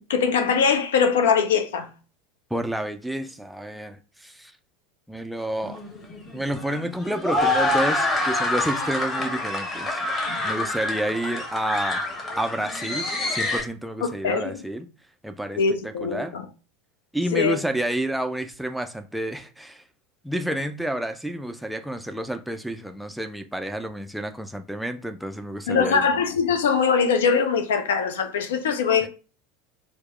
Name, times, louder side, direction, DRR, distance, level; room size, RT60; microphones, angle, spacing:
voice 1, 0.1-1.9 14.2-14.6 15.6-16.4 17.3-17.6 25.7-29.1, left 6 dB, 65° left, 0.5 m, -22 dB
voice 2, 2.5-4.5 5.1-5.8 6.3-10.0 10.4-12.0 12.4-14.9 15.2-16.4 17.1-19.8 20.2-26.1 29.0-29.1, right 1 dB, ahead, 0.4 m, -29 dB
sound 1, 5.6-13.6, left 2 dB, 20° left, 1.2 m, -27 dB
4.5 x 2.0 x 3.1 m
figure-of-eight pair, 75°, 0 cm